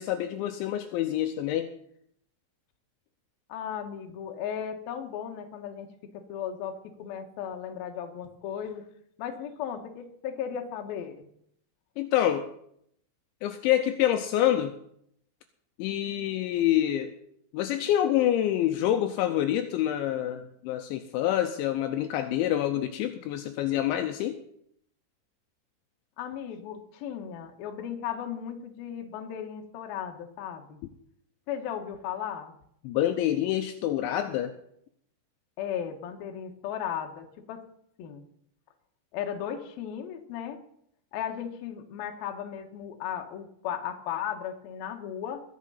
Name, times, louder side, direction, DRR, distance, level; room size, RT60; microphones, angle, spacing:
voice 1, 0.0-1.7 12.0-12.5 13.4-14.8 15.8-17.2 17.5-24.4 32.8-34.5, left 12 dB, 80° left, 7 dB, 2.9 m, -27 dB
voice 2, 3.5-5.9 6.1-8.8 9.2-11.3 26.2-30.8 31.5-32.5 35.6-37.6 38.0-38.2 39.1-40.6 41.1-45.4, left 9 dB, 65° left, 4 dB, 2.7 m, -36 dB
21.0 x 7.4 x 5.6 m, 0.71 s
omnidirectional pair, 5.6 m